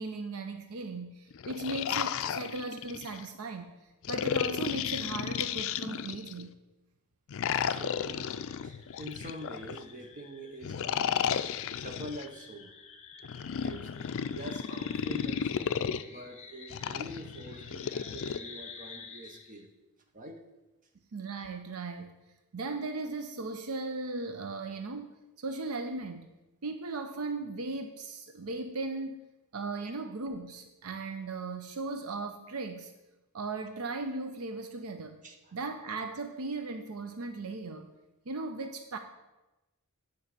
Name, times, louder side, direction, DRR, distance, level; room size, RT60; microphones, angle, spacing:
voice 1, 0.0-3.7 4.1-6.5 21.1-22.1 22.5-25.1 25.4-26.3 26.6-29.2 29.5-32.9 33.3-35.2 35.5-37.9 38.3-39.0, right 3 dB, 70° right, 7 dB, 0.6 m, -37 dB
sound 1, 1.3-3.2 4.0-6.4 7.3-9.8 10.6-12.2 13.2-16.0 16.7-18.4, left 8 dB, 60° left, 0.4 m, -33 dB
sound 2, 7.7-19.6, left 5 dB, 30° left, 1.0 m, -51 dB
voice 2, 7.7-11.4 11.7-12.8 13.6-13.9 14.3-19.7 20.1-20.4 35.2-35.6, equal, 35° right, 4 dB, 1.0 m, -45 dB
8.9 x 4.7 x 6.7 m, 1.0 s
head